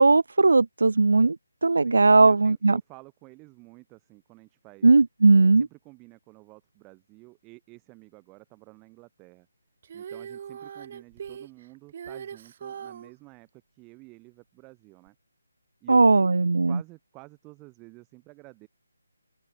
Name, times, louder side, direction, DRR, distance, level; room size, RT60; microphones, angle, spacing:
voice 1, 0.0-1.4 1.6-2.8 4.8-5.7 15.9-16.8, right 3 dB, 80° right, 0.7 m, -18 dB
voice 2, 1.8-4.9 5.3-9.5 9.9-15.1 15.8-18.7, right 26 dB, 15° right, 5.8 m, -51 dB
Female singing, 9.8-13.1 15.1-15.2, right 8 dB, 35° right, 6.4 m, -40 dB
open air
hypercardioid pair, 170°, 0 cm